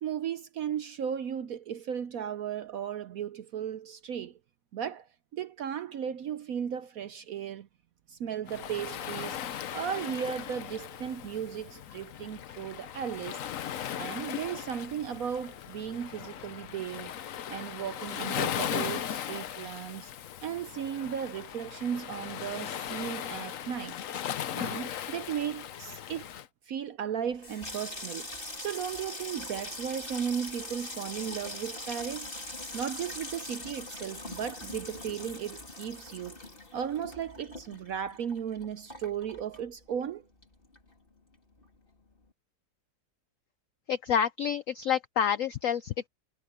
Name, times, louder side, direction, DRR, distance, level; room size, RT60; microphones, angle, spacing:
voice 1, 0.0-4.4 4.7-5.1 5.3-7.7 8.1-9.4 9.7-13.4 13.9-17.1 17.5-20.1 20.4-24.0 24.5-26.3 26.7-28.3 28.6-32.3 32.7-36.4 36.7-40.2, right 8 dB, 65° right, 0.9 m, -35 dB
Waves surf, 8.5-26.5, left 10 dB, 60° left, 0.9 m, -38 dB
Water tap faucet / Sink (filling or washing), 27.3-40.1 40.4-41.1 41.3-41.7, left 2 dB, 25° left, 3.7 m, -42 dB
voice 2, 43.9-46.1, left 8 dB, 85° left, 0.7 m, -28 dB
omnidirectional pair, 2.1 m